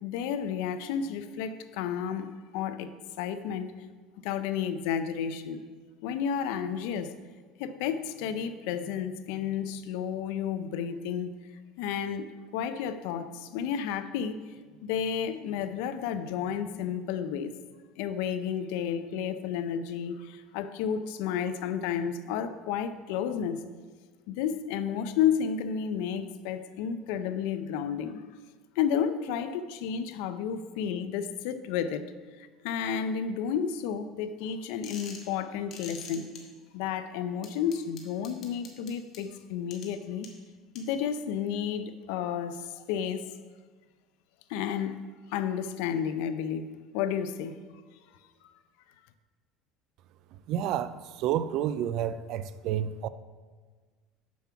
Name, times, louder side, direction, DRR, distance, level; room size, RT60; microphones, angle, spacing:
voice 1, 0.0-3.7 4.2-5.6 6.0-7.2 7.6-11.4 11.8-14.4 14.8-17.5 18.0-23.6 24.3-28.2 28.8-32.1 32.4-36.3 36.7-40.3 40.7-43.3 44.5-45.0 45.3-47.6, left 8 dB, 75° left, 11 dB, 0.5 m, -32 dB
sound 1, 34.8-35.3 35.7-36.4 37.4-39.2 39.7-39.9 40.2-40.3 40.7-40.8, left 6 dB, 45° left, 1.3 m, -43 dB
voice 2, 50.5-53.1, right 10 dB, 50° right, 14 dB, 0.4 m, -30 dB
7.1 x 6.0 x 5.8 m, 1.4 s
cardioid pair, 155°, 0 cm